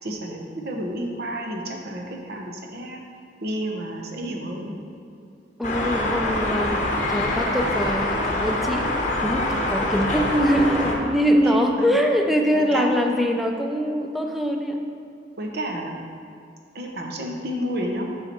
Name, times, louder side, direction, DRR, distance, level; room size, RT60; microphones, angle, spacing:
voice 1, 0.0-3.0 3.4-4.7 11.4-11.9 12.5-12.9 15.4-15.9 16.7-18.1, right 1 dB, 60° right, 1 dB, 0.9 m, -30 dB
sound 1, 5.6-10.9, left 1 dB, 45° left, 0.9 m, -25 dB
voice 2, 5.6-14.8, equal, ahead, 2 dB, 0.5 m, -23 dB
7.0 x 5.8 x 4.5 m, 2.5 s
head